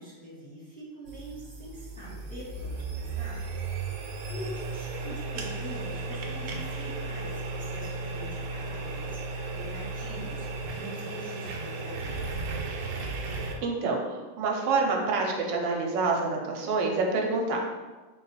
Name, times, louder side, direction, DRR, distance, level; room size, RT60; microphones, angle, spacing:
voice 1, 0.0-3.5 3.8-4.0 4.3-12.3, equal, 5° left, -8 dB, 0.7 m, -44 dB
sound 1, 1.1-13.6, right 3 dB, 70° right, 1.1 m, -35 dB
voice 2, 13.6-17.6, right 3 dB, 85° right, 0 dB, 1.3 m, -27 dB
4.1 x 2.3 x 4.1 m, 1.3 s
omnidirectional pair, 2.0 m